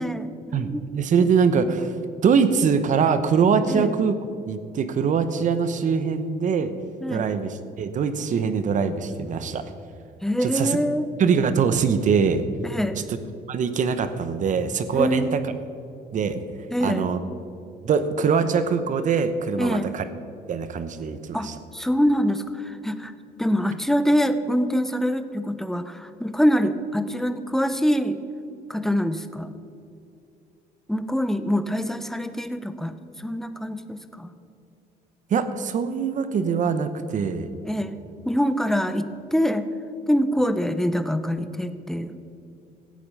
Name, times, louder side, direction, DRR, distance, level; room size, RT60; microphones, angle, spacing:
voice 1, 0.0-0.8 3.7-3.9 7.0-7.3 10.2-11.1 12.6-13.0 14.9-15.4 16.7-17.1 19.6-19.9 21.3-23.1 23.4-28.2 28.7-29.5 30.9-34.3 37.6-38.0 38.3-39.7 40.1-42.2, equal, ahead, 10 dB, 0.7 m, -24 dB
voice 2, 0.5-1.9 2.2-4.2 4.5-6.7 7.1-9.7 10.4-10.8 11.2-12.4 12.9-13.2 13.5-15.4 16.1-16.4 16.8-17.2 17.8-20.0 20.5-21.6 35.3-37.5, right 6 dB, 50° right, 11 dB, 1.0 m, -23 dB
15.5 x 8.7 x 5.5 m, 2.6 s
cardioid pair, 110°, 17 cm